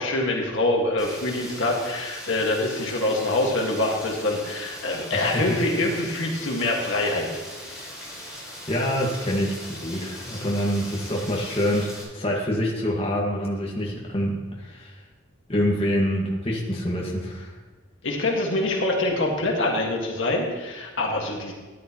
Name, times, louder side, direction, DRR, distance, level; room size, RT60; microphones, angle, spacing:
voice 1, 0.0-7.3 18.0-21.5, left 2 dB, 60° left, 0 dB, 1.8 m, -25 dB
Rain, 1.0-12.0, left 1 dB, 5° right, 3.7 m, -40 dB
voice 2, 5.1-5.6 8.2-8.4 8.7-15.0 15.5-17.5, equal, 30° left, -3 dB, 1.7 m, -26 dB
13.5 x 10.5 x 3.0 m, 1.3 s
head